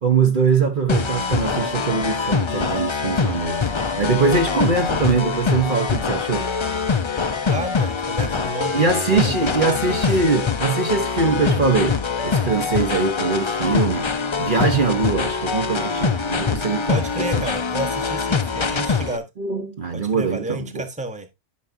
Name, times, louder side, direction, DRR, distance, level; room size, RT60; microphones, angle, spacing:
voice 1, 0.0-6.5 8.7-14.1 14.4-17.0 17.3-17.5 19.4-20.8, right 4 dB, 45° right, 1.0 m, -22 dB
sound 1, 0.9-19.2, left 5 dB, 35° left, 0.4 m, -24 dB
voice 2, 7.4-10.0 16.9-19.3 19.9-21.3, right 2 dB, 5° right, 1.1 m, -31 dB
12.5 x 5.8 x 2.7 m
omnidirectional pair, 1.3 m